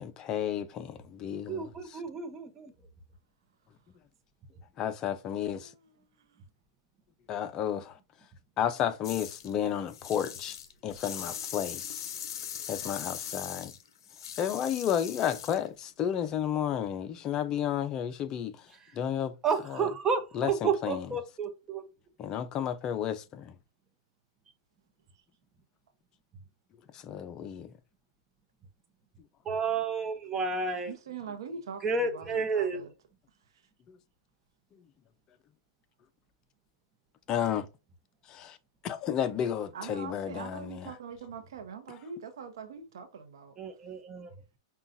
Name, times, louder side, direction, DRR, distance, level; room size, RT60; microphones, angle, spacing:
voice 1, 0.0-1.7 4.8-5.7 7.3-7.9 8.6-10.6 10.8-12.1 12.7-13.7 14.4-18.5 19.0-19.3 20.3-21.0 22.2-23.5 27.0-27.7 33.9-34.0 37.3-37.7 38.3-38.6 38.8-40.9, left 9 dB, 30° left, 0.5 m, -32 dB
voice 2, 1.5-2.7 19.4-21.9 29.4-30.9 31.8-32.8 43.6-44.3, right 5 dB, 20° right, 0.8 m, -31 dB
voice 3, 5.6-6.4 30.9-32.9 39.7-43.6, right 6 dB, 80° right, 0.8 m, -43 dB
sound 1, 9.0-9.5 9.9-15.7, left 8 dB, 70° left, 0.6 m, -40 dB
5.5 x 2.3 x 2.6 m
hypercardioid pair, 135°, 2 cm